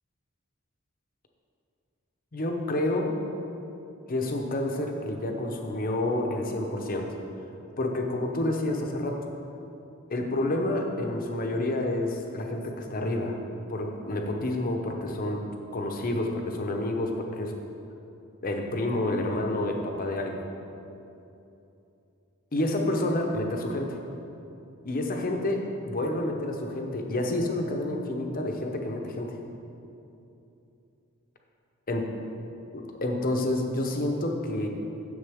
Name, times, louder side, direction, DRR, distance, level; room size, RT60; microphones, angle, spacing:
voice 1, 2.3-3.2 4.1-7.2 7.8-9.3 10.1-13.4 13.7-15.5 15.7-17.5 18.4-20.4 22.5-24.0 24.8-29.4 31.9-32.1 32.7-34.7, left 1 dB, 40° left, 2 dB, 0.8 m, -29 dB
9.8 x 6.9 x 3.5 m, 2.8 s
head